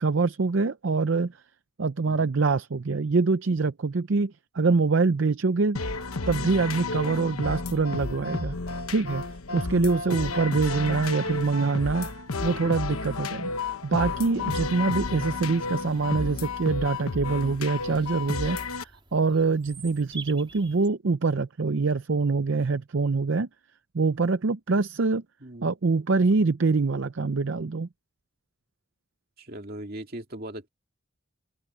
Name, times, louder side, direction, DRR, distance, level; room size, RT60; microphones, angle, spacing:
voice 1, 0.0-1.4 1.8-5.8 6.3-8.6 8.9-9.2 9.5-12.2 12.4-13.5 13.8-23.5 23.9-25.2 25.6-27.9, right 4 dB, 60° right, 0.6 m, -25 dB
sound 1, 5.7-18.8, left 3 dB, 85° left, 1.2 m, -32 dB
voice 2, 10.1-10.5 12.3-12.8 25.4-25.7 29.4-30.7, right 1 dB, 45° right, 2.4 m, -40 dB
Bird vocalization bird call bird song, 14.6-20.9, right 4 dB, 25° right, 3.7 m, -49 dB
open air
head